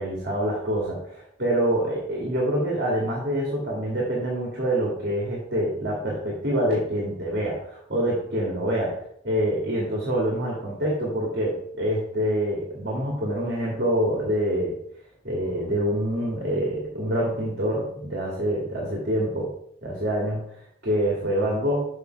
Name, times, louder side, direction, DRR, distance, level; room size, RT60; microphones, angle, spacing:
voice 1, 0.0-8.9 9.2-14.8 15.2-19.5 19.8-20.4 20.8-21.9, equal, 55° right, -3 dB, 2.2 m, -26 dB
6.9 x 6.1 x 4.6 m, 0.69 s
head